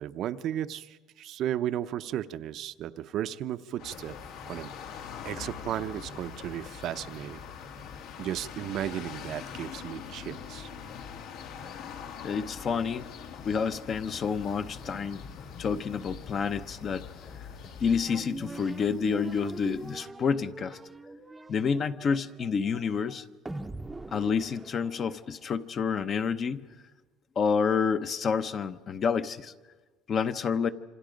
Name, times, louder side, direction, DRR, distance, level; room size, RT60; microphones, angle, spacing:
voice 1, 0.0-4.1 4.5-4.7 5.2-7.4 8.2-10.7, right 11 dB, 50° right, 11 dB, 0.6 m, -34 dB
sound 1, 3.8-18.0, left 7 dB, 70° left, 1.9 m, -44 dB
sound 2, 3.9-20.0, left 6 dB, 55° left, 2.8 m, -50 dB
voice 2, 12.2-13.1 13.4-15.2 15.6-17.0 17.8-20.8 21.5-23.2 24.1-26.6 27.4-29.5 30.1-30.7, left 6 dB, 35° left, 11 dB, 0.8 m, -29 dB
sound 3, 18.0-25.5, right 2 dB, 10° right, 0.7 m, -43 dB
27.5 x 25.5 x 5.2 m, 1.3 s
cardioid pair, 145°, 0 cm